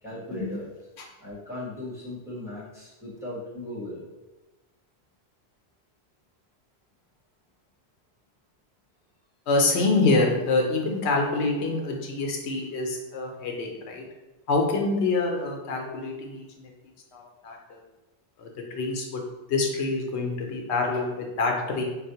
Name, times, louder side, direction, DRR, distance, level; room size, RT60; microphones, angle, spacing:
voice 1, 0.0-0.7 1.2-4.0, left 1 dB, 5° right, -7 dB, 0.9 m, -37 dB
voice 2, 9.5-14.0 14.5-16.7 17.1-17.8 18.4-19.2 19.5-21.8, left 3 dB, 85° left, 1 dB, 0.9 m, -26 dB
4.3 x 2.0 x 2.7 m, 1.1 s
omnidirectional pair, 1.1 m